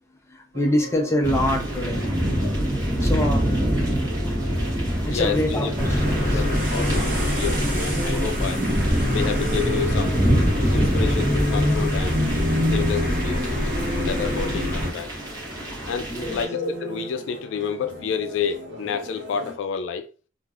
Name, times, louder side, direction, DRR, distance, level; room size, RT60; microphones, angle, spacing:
voice 1, 0.3-2.2 2.8-3.5 5.0-7.1 16.1-16.4, left 1 dB, 15° left, 0.5 m, -26 dB
sound 1, 0.5-19.5, equal, 80° right, 1.0 m, -38 dB
sound 2, 1.2-16.4, equal, 20° right, 1.0 m, -26 dB
voice 2, 5.1-5.7 6.3-8.6 9.1-10.2 10.7-12.2 12.7-13.5 14.0-15.1 15.9-20.1, left 6 dB, 70° left, 0.3 m, -29 dB
sound 3, 5.8-14.9, left 1 dB, 45° right, 1.0 m, -25 dB
2.5 x 2.3 x 3.4 m
head